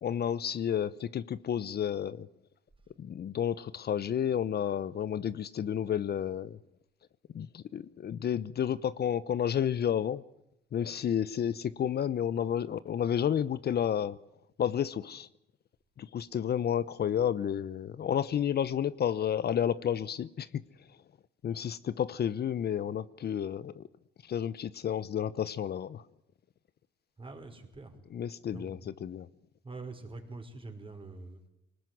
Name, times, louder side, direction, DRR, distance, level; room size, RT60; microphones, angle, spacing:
voice 1, 0.0-2.3 3.0-6.6 7.3-10.2 10.7-14.2 14.6-15.3 16.0-20.6 21.4-23.9 24.2-26.0 28.1-29.3, left 9 dB, 55° left, 0.9 m, -31 dB
voice 2, 27.2-28.0 28.4-28.8 29.6-31.5, right 3 dB, 25° right, 5.3 m, -45 dB
23.5 x 19.5 x 9.4 m
cardioid pair, 90°, 20 cm